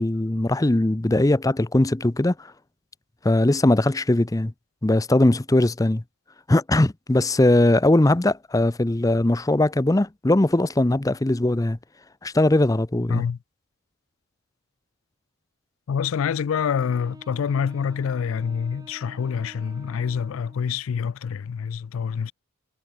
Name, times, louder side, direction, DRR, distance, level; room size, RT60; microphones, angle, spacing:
voice 1, 0.0-2.5 3.2-4.5 4.8-6.0 6.5-11.8 12.2-13.3, left 1 dB, 15° left, 0.5 m, -20 dB
voice 2, 15.9-22.3, left 7 dB, 80° left, 0.4 m, -26 dB
Wind instrument woodwind instrument, 16.7-20.8, right 1 dB, 20° right, 3.1 m, -48 dB
head